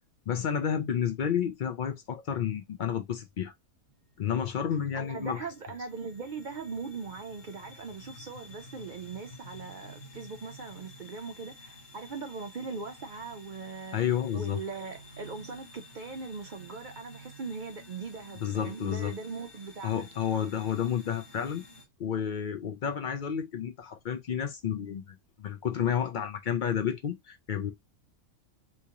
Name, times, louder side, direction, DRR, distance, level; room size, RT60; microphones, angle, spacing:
voice 1, 0.3-3.5 4.2-5.5 13.9-14.6 18.4-19.1 19.8-21.6 22.0-27.7, left 8 dB, 65° left, 0.4 m, -31 dB
sound 1, 3.9-21.9, left 1 dB, 50° left, 1.6 m, -51 dB
voice 2, 4.9-14.0 14.3-20.1, right 4 dB, 60° right, 0.5 m, -40 dB
2.9 x 2.9 x 3.6 m
omnidirectional pair, 1.4 m